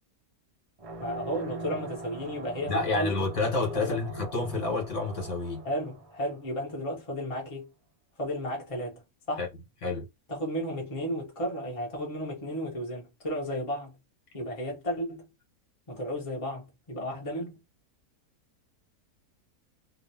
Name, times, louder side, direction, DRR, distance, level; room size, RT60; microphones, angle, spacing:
sound 1, 0.8-6.9, right 2 dB, 65° right, 0.3 m, -43 dB
voice 1, 1.0-3.1 3.7-4.0 5.6-7.7 8.2-9.4 10.3-14.0 14.3-15.3 15.9-17.6, equal, 25° left, 0.9 m, -33 dB
voice 2, 2.7-5.6 9.4-9.5 9.8-10.1, left 3 dB, 55° left, 1.6 m, -29 dB
3.0 x 2.5 x 2.7 m
omnidirectional pair, 1.6 m